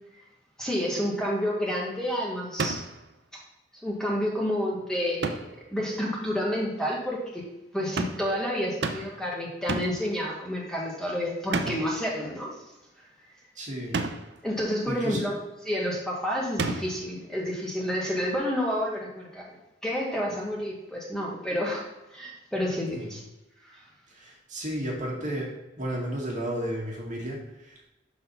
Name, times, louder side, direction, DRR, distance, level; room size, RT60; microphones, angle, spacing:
voice 1, 0.6-2.8 3.8-5.4 5.7-7.4 7.7-12.5 14.4-15.4 15.7-19.4 19.8-23.2 23.6-23.8, equal, 5° left, -4 dB, 1.3 m, -29 dB
sound 1, 2.6-3.0 5.2-5.6 8.0-8.3 8.8-9.2 9.7-10.1 11.5-12.0 13.9-14.4 16.6-17.1, right 3 dB, 65° right, 0.5 m, -31 dB
voice 2, 13.6-14.0 14.9-15.2 24.1-25.5 25.8-27.9, right 1 dB, 45° right, -3 dB, 1.9 m, -33 dB
6.2 x 3.9 x 5.6 m, 0.98 s
head